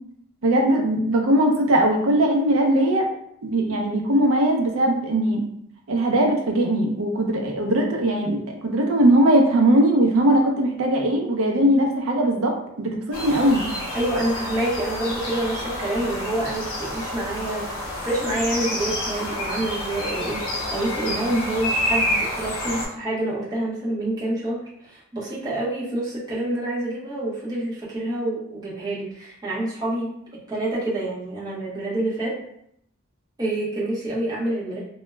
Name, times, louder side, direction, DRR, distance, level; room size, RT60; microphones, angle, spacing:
voice 1, 0.4-3.1 3.4-5.4 5.9-13.6, right 1 dB, 70° right, 2 dB, 0.5 m, -20 dB
sound 1, 13.1-22.9, left 1 dB, 65° left, 0.7 m, -28 dB
voice 2, 13.9-30.1 30.5-32.4 33.4-34.8, right 1 dB, 15° right, -7 dB, 0.6 m, -27 dB
2.2 x 2.0 x 3.1 m, 0.73 s
head